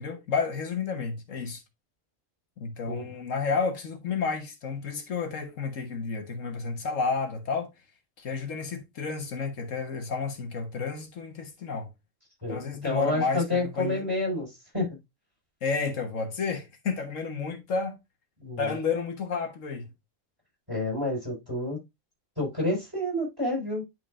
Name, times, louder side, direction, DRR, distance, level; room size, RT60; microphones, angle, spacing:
voice 1, 0.0-1.6 2.6-7.7 8.2-11.9 12.5-14.0 15.6-18.0 18.6-19.9, left 5 dB, 80° left, 1.7 m, -31 dB
voice 2, 12.4-15.0 18.4-18.8 20.7-21.8 22.4-23.8, left 2 dB, 15° right, 5.3 m, -29 dB
10.5 x 4.8 x 2.5 m
omnidirectional pair, 1.3 m